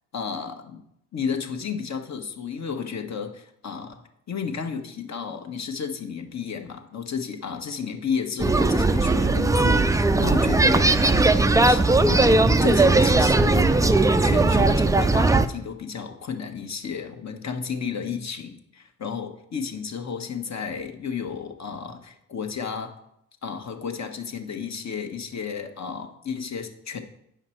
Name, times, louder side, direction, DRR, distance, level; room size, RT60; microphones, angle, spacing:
voice 1, 0.1-0.8 1.1-4.0 4.3-23.0 23.4-27.0, left 6 dB, 45° left, 5 dB, 1.3 m, -32 dB
sound 1, 8.4-15.5, right 2 dB, 10° right, 0.4 m, -18 dB
9.1 x 5.7 x 4.4 m, 0.78 s
hypercardioid pair, 50°, 38 cm